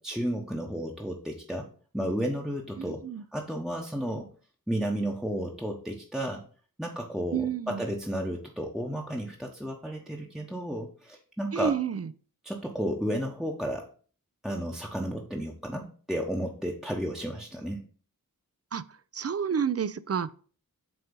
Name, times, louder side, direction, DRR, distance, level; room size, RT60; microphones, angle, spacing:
voice 1, 0.0-1.7 1.9-3.0 3.3-4.3 4.7-6.4 6.8-11.8 12.4-13.9 14.4-17.9, equal, ahead, 0.8 m, -32 dB
voice 2, 2.8-3.2 7.3-7.8 11.5-12.1 18.7-18.8 19.1-20.3, right 7 dB, 45° right, 0.4 m, -30 dB
7.9 x 2.7 x 5.3 m
wide cardioid pair, 40°, 36 cm